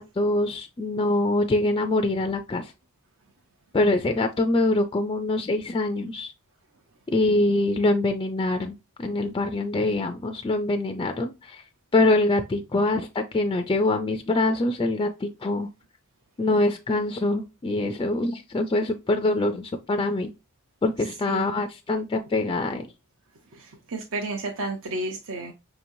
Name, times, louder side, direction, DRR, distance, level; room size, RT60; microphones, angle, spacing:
voice 1, 0.0-2.7 3.7-6.3 7.1-11.6 11.9-15.7 16.4-20.3 20.8-22.9, left 2 dB, 20° left, 6 dB, 0.3 m, -24 dB
voice 2, 21.3-21.6 23.5-25.5, right 2 dB, 65° right, 2 dB, 0.7 m, -32 dB
5.5 x 2.9 x 2.6 m, 0.26 s
head